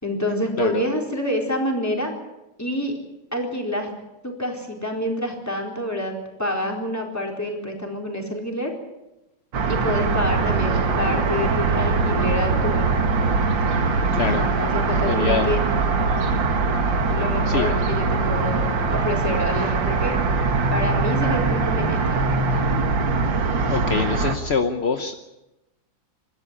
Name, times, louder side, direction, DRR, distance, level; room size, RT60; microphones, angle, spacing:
voice 1, 0.0-2.2 2.6-2.9 3.3-3.9 4.2-8.7 9.7-12.9 13.7-15.6 17.1-18.6 18.9-20.1 20.7-22.1, left 1 dB, 5° left, 1 dB, 4.2 m, -27 dB
sound 1, 9.5-24.4, right 4 dB, 60° right, 2.3 m, -22 dB
voice 2, 14.1-14.5 15.1-15.5 17.5-17.7 23.7-25.2, left 5 dB, 45° left, 7 dB, 0.8 m, -24 dB
25.5 x 13.0 x 9.9 m, 0.96 s
omnidirectional pair, 2.3 m